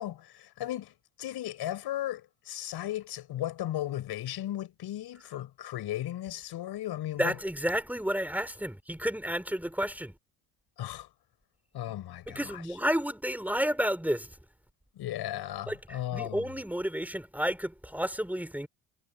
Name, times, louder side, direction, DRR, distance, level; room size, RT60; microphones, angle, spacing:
voice 1, 0.0-7.3 10.8-11.1 11.7-12.8 14.9-16.5, left 13 dB, 55° left, 5.1 m, -36 dB
voice 2, 7.2-10.1 12.3-14.3 15.7-18.7, equal, 5° right, 4.8 m, -31 dB
hypercardioid pair, 75°, 47 cm